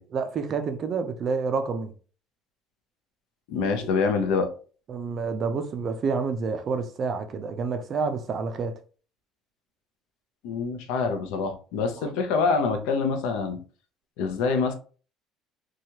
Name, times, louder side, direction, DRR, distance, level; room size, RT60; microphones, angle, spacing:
voice 1, 0.1-1.9 3.8-3.9 4.9-8.8 12.0-12.1, right 5 dB, 30° right, 0.4 m, -29 dB
voice 2, 3.5-4.5 10.4-13.6 14.2-14.7, left 4 dB, 80° left, 0.6 m, -25 dB
2.9 x 2.3 x 2.8 m
cardioid pair, 175°, 0 cm